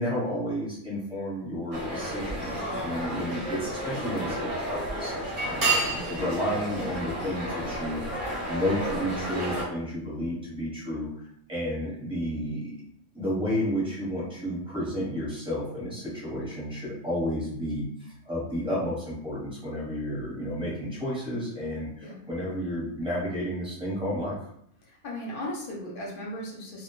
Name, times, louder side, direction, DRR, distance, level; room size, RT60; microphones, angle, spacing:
voice 1, 0.0-8.0 8.5-12.8 13.1-17.9 18.2-24.3, equal, 5° right, -7 dB, 0.7 m, -31 dB
sound 1, 1.7-9.7, right 1 dB, 50° right, 0.7 m, -31 dB
voice 2, 24.9-26.8, left 1 dB, 55° left, -2 dB, 0.7 m, -37 dB
2.2 x 2.1 x 3.0 m, 0.72 s
omnidirectional pair, 1.3 m